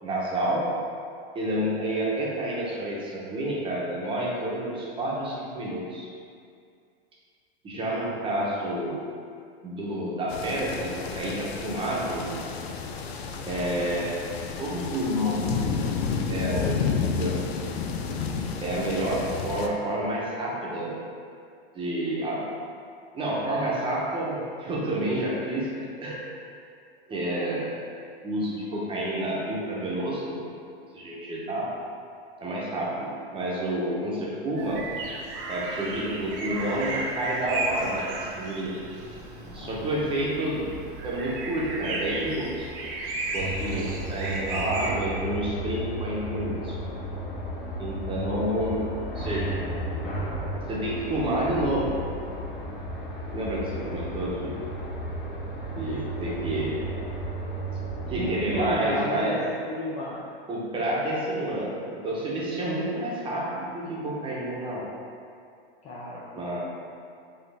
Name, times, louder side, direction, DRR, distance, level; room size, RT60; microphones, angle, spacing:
voice 1, 0.0-0.7 1.3-6.1 7.6-9.0 9.6-12.3 13.5-14.2 14.6-15.5 16.3-17.6 18.6-21.0 21.7-22.4 23.1-26.2 27.1-27.7 28.2-30.4 30.9-31.7 32.4-34.8 35.5-38.8 39.5-40.6 41.0-42.7 43.3-46.8 47.8-48.9 49.1-49.6 50.7-51.9 53.3-54.6 55.7-56.8 58.1-59.4 60.5-64.9 66.3-66.6, right 1 dB, 15° right, -5 dB, 0.8 m, -29 dB
sound 1, 10.3-19.7, left 5 dB, 85° left, 0.5 m, -31 dB
sound 2, 34.6-44.9, right 2 dB, 60° right, 0.8 m, -34 dB
voice 2, 39.5-39.9 58.2-60.3 65.8-66.4, left 1 dB, 25° left, -6 dB, 0.4 m, -32 dB
sound 3, 43.3-58.7, right 1 dB, 65° left, 1.3 m, -34 dB
4.2 x 3.3 x 3.3 m, 2.3 s
supercardioid pair, 140°, 31 cm